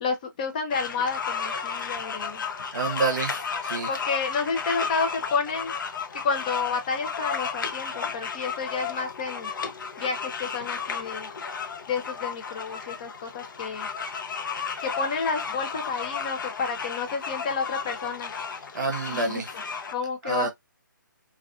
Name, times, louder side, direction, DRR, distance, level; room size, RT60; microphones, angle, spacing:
voice 1, 0.0-2.4 3.9-5.7 6.2-9.5 10.0-11.3 11.9-13.9 14.8-18.3 19.1-19.4 19.9-20.5, left 5 dB, 25° left, 0.5 m, -30 dB
sound 1, 0.7-19.9, left 6 dB, 70° left, 0.6 m, -33 dB
voice 2, 2.7-3.9 18.7-19.5 20.2-20.5, right 4 dB, 60° right, 0.6 m, -28 dB
2.4 x 2.3 x 2.3 m
hypercardioid pair, 165°, 11 cm